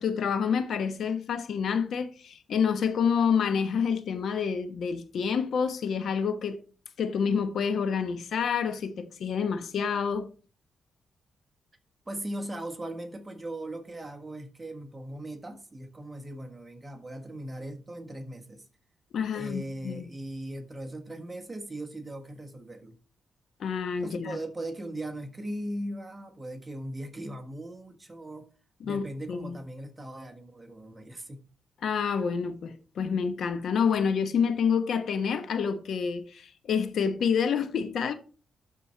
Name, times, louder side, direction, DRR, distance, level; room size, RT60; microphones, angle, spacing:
voice 1, 0.0-6.6 7.0-10.3 19.1-20.1 23.6-24.4 28.8-29.6 31.8-38.1, left 6 dB, 70° left, 1.0 m, -28 dB
voice 2, 12.1-18.7 19.3-23.0 24.0-28.5 28.8-31.4, right 1 dB, 15° right, 1.6 m, -39 dB
12.0 x 4.3 x 4.4 m
cardioid pair, 115°, 0 cm